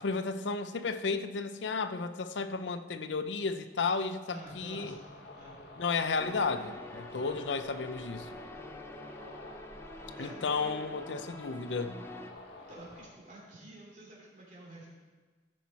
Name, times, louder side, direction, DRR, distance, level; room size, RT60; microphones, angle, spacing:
voice 1, 0.0-4.9 5.8-8.4 10.2-12.0, left 4 dB, 85° left, 11 dB, 0.6 m, -33 dB
voice 2, 4.3-5.6 7.1-7.4 10.0-10.9 12.6-15.0, right 1 dB, 45° right, -4 dB, 2.8 m, -49 dB
sound 1, 4.4-13.0, equal, 30° left, 2.1 m, -57 dB
sound 2, 4.8-13.1, left 2 dB, 70° left, 1.2 m, -50 dB
sound 3, 6.2-12.3, left 1 dB, 15° left, 0.5 m, -47 dB
13.5 x 6.3 x 4.2 m, 1.4 s
head